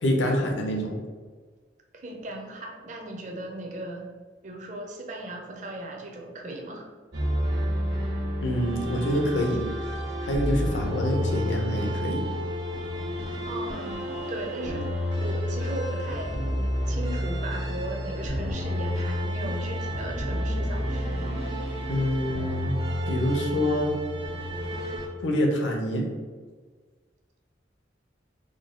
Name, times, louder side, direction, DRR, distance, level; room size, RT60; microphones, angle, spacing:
voice 1, 0.0-1.0 8.4-9.7 10.2-12.3 21.9-22.8 23.1-24.0 25.2-26.1, equal, 85° left, 1 dB, 0.7 m, -26 dB
voice 2, 1.9-4.1 4.4-6.9 13.4-14.9 15.2-16.4 16.9-21.4, right 1 dB, 40° right, 1 dB, 0.5 m, -37 dB
sound 1, 7.1-25.1, equal, 70° right, 1.0 m, -30 dB
3.8 x 2.2 x 3.7 m, 1.5 s
head